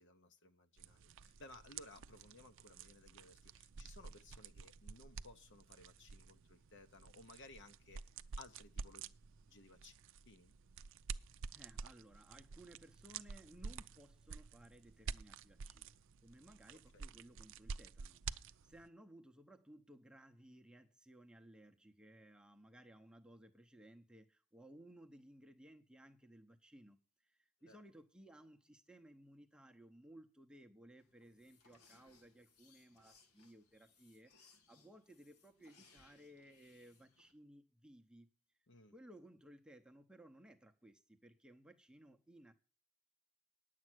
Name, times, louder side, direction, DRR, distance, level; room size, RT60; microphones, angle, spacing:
voice 1, 0.0-8.0 8.4-9.2 9.5-10.0 10.3-10.5 16.9-17.0 27.7-27.8 38.7-38.9, left 2 dB, 55° left, 0.9 m, -59 dB
sound 1, 0.8-18.9, right 5 dB, 55° right, 0.5 m, -50 dB
voice 2, 11.5-38.3 38.9-42.5, right 1 dB, 5° right, 0.7 m, -60 dB
sound 2, 31.0-37.3, left 4 dB, 90° left, 1.8 m, -69 dB
10.0 x 7.5 x 6.1 m
head